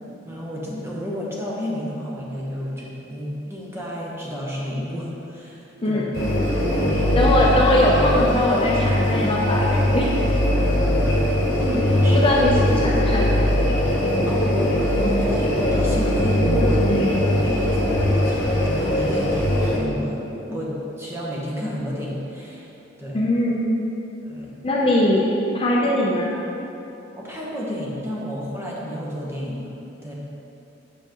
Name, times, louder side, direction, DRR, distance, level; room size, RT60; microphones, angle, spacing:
voice 1, 0.2-6.0 6.7-7.3 10.4-11.3 11.6-12.3 14.3-22.7 23.0-23.2 24.2-24.5 27.2-29.7 30.0-30.1, equal, 15° right, -5 dB, 1.0 m, -31 dB
voice 2, 5.8-6.1 7.1-10.1 12.1-13.3 16.9-17.2 23.1-23.8 24.6-25.3 25.5-26.3, left 1 dB, 30° left, -3 dB, 0.5 m, -21 dB
sound 1, 6.1-19.8, left 1 dB, 65° left, 1.0 m, -20 dB
6.9 x 5.6 x 3.0 m, 3.0 s
head